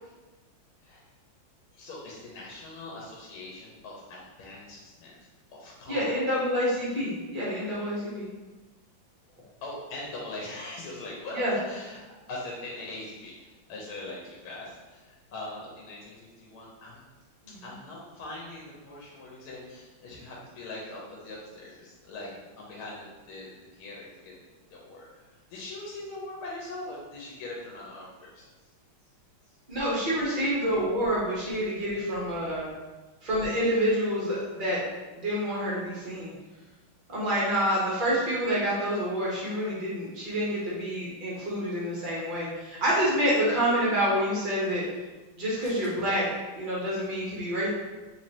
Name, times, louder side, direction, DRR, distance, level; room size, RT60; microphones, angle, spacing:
voice 1, 1.7-6.2 9.6-12.0 12.3-17.0 17.6-24.4 24.7-28.5 29.5-29.6, left 2 dB, 90° left, -4 dB, 1.6 m, -41 dB
voice 2, 5.9-8.3 11.3-11.5 29.7-32.7 33.2-34.8 35.1-36.3 37.1-44.8 45.4-46.3 46.5-47.7, equal, 60° right, -7 dB, 0.5 m, -27 dB
3.7 x 3.1 x 2.8 m, 1.2 s
omnidirectional pair, 2.3 m